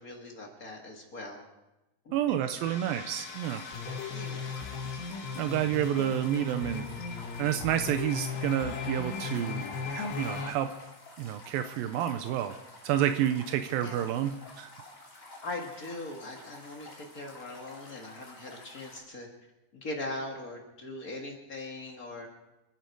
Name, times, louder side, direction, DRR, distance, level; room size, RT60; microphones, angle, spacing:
voice 1, 0.0-1.4 2.0-2.1 4.1-4.6 13.8-14.1 15.4-19.3 19.7-22.3, left 2 dB, 60° left, 0 dB, 0.9 m, -40 dB
voice 2, 2.1-3.6 5.4-6.8 7.4-9.6 9.9-10.7 11.2-12.6 12.8-14.7, right 11 dB, 85° right, 9 dB, 2.0 m, -29 dB
sound 1, 2.6-10.5, left 5 dB, 85° left, 4.1 m, -37 dB
sound 2, 3.2-19.0, left 2 dB, 20° left, 2.5 m, -51 dB
28.0 x 10.5 x 4.7 m, 0.97 s
omnidirectional pair, 4.9 m